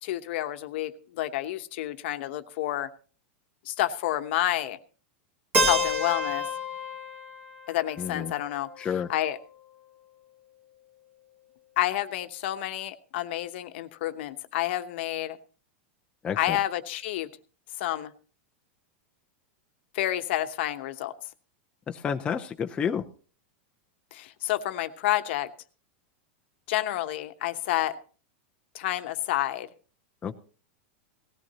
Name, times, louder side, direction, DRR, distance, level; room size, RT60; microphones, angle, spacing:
voice 1, 0.0-2.9 3.6-4.8 5.6-6.5 7.7-9.4 11.8-15.4 16.4-17.3 17.8-18.1 19.9-21.1 24.1-25.5 26.7-28.0 28.7-29.7, left 14 dB, 60° left, 10 dB, 1.0 m, -29 dB
Keyboard (musical), 5.5-9.4, equal, 15° right, 2.0 m, -30 dB
voice 2, 8.0-8.3 8.8-9.1 16.2-16.6 21.9-23.0 30.2-30.3, left 7 dB, 15° left, 4 dB, 0.6 m, -30 dB
18.0 x 14.5 x 2.8 m, 0.38 s
supercardioid pair, 150°, 7 cm